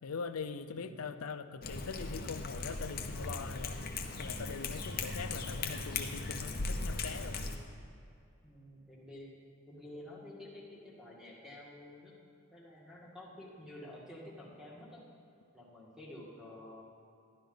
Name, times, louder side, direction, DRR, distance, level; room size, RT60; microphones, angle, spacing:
voice 1, 0.0-3.8 4.2-7.5, left 5 dB, 85° left, 11 dB, 0.5 m, -42 dB
voice 2, 0.7-1.1 8.4-9.3 9.7-12.1 12.5-15.0 15.5-16.8, left 1 dB, 5° right, -5 dB, 2.0 m, -50 dB
Cat, 1.6-7.6, left 3 dB, 45° left, 0.8 m, -38 dB
12.0 x 11.0 x 3.9 m, 2.5 s
head